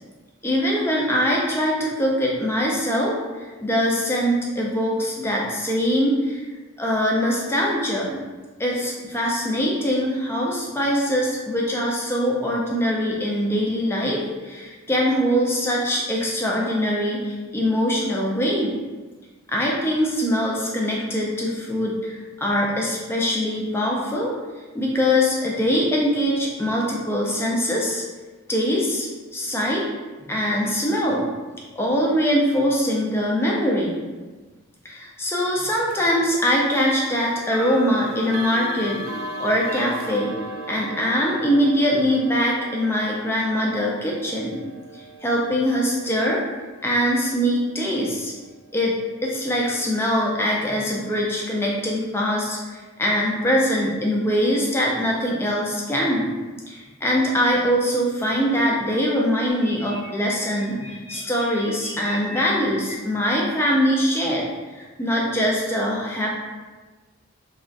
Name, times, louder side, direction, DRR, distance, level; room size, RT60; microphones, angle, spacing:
voice 1, 0.4-6.4 6.8-8.2 8.6-18.8 19.5-24.3 24.7-28.0 28.5-29.1 29.3-29.9 30.3-31.3 31.8-34.0 34.8-39.0 39.4-40.3 40.7-44.6 45.0-46.4 46.8-48.3 48.7-49.0 49.2-56.4 56.7-64.4 64.7-66.4, equal, 10° left, -3 dB, 0.4 m, -23 dB
sound 1, 35.9-36.1 37.4-48.3, right 1 dB, 70° right, 0.4 m, -37 dB
sound 2, 59.5-62.9, right 1 dB, 10° right, 0.8 m, -40 dB
2.4 x 2.2 x 3.7 m, 1.3 s
head